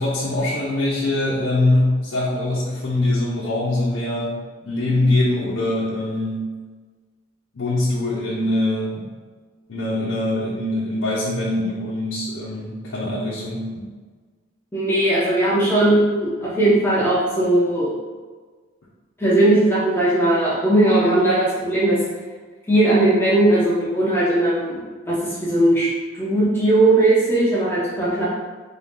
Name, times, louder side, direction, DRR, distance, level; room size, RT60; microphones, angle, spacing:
voice 1, 0.0-6.5 7.5-9.1 9.7-13.9, left 1 dB, 90° left, -6 dB, 0.7 m, -23 dB
voice 2, 14.7-17.9 19.2-22.0 22.7-25.9 26.1-28.2, right 1 dB, 10° left, -9 dB, 0.7 m, -18 dB
3.8 x 2.7 x 3.7 m, 1.5 s
head